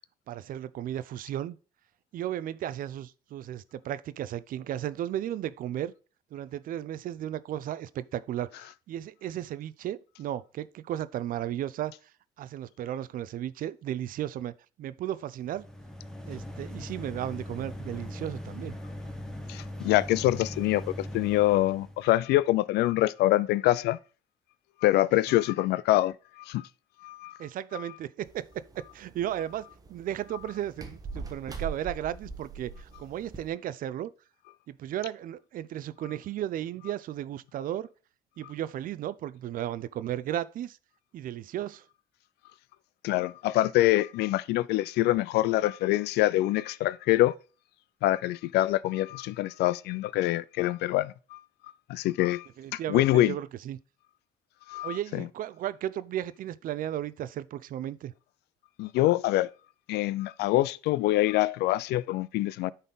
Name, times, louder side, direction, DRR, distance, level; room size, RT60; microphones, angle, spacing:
voice 1, 0.3-1.6 2.1-5.9 6.3-11.9 12.4-15.6 16.3-18.8 27.4-34.1 34.7-37.9 38.4-40.8 41.1-41.9 52.6-53.8 54.8-58.1, right 11 dB, 55° right, 0.4 m, -35 dB
sound 1, 15.4-22.1, left 1 dB, 5° left, 1.1 m, -40 dB
voice 2, 19.5-24.0 24.8-26.7 27.0-27.4 27.7-27.8 43.0-47.3 48.0-51.4 51.9-52.5 52.7-53.3 54.7-55.3 58.8-59.5 59.9-62.7, left 16 dB, 80° left, 0.4 m, -25 dB
sound 2, 28.2-33.5, right 5 dB, 20° right, 1.0 m, -42 dB
9.1 x 4.1 x 3.9 m
cardioid pair, 110°, 17 cm